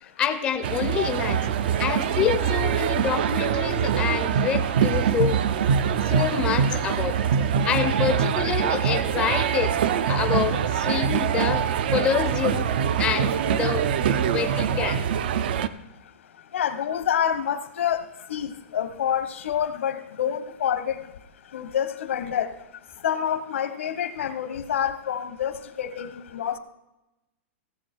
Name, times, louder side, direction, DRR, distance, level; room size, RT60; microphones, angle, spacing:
voice 1, 0.0-1.5 1.8-5.4 6.0-7.4 7.6-9.8 10.1-12.7 13.0-13.8 14.3-15.1, left 8 dB, 15° left, 7 dB, 0.5 m, -27 dB
sound 1, 0.6-15.7, right 8 dB, 50° right, 0.5 m, -24 dB
voice 2, 16.5-18.0 18.3-21.0 21.5-22.5 23.0-26.6, left 9 dB, 80° left, 11 dB, 1.1 m, -27 dB
15.5 x 7.2 x 4.4 m, 0.96 s
supercardioid pair, 175°, 7 cm